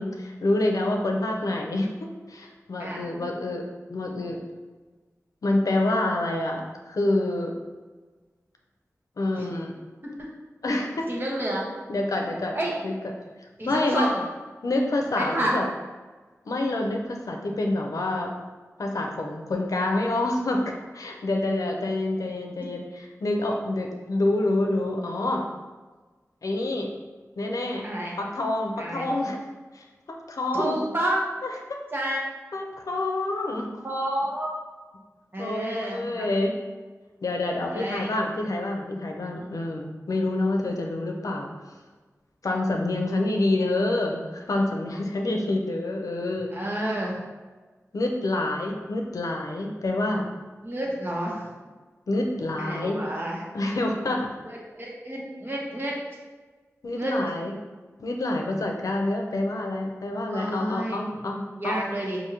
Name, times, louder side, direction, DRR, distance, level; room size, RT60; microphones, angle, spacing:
voice 1, 0.0-3.6 3.9-4.4 5.4-7.5 9.2-9.7 10.6-11.1 11.9-12.6 12.8-12.9 13.6-14.1 14.6-15.6 16.4-18.3 18.8-25.5 26.4-26.9 27.4-27.9 28.2-29.4 29.7-30.8 31.4-31.8 32.5-33.7 35.4-36.5 37.2-41.5 42.4-46.5 47.9-50.3 52.1-53.1 53.5-54.3 56.8-57.5 58.0-61.8, left 2 dB, 90° left, 1 dB, 0.5 m, -27 dB
voice 2, 11.1-11.7 12.5-12.8 13.6-14.2 15.2-15.5 27.8-28.1 28.8-29.1 30.5-31.2 31.9-32.2 33.8-34.5 35.3-36.3 37.5-38.1 45.2-45.4 46.5-47.2 50.6-51.5 52.6-53.4 54.5-56.0 56.9-57.2 60.3-61.0 61.6-62.2, right 1 dB, 40° right, -3 dB, 1.0 m, -30 dB
4.8 x 2.6 x 2.9 m, 1.3 s
wide cardioid pair, 70°, 6 cm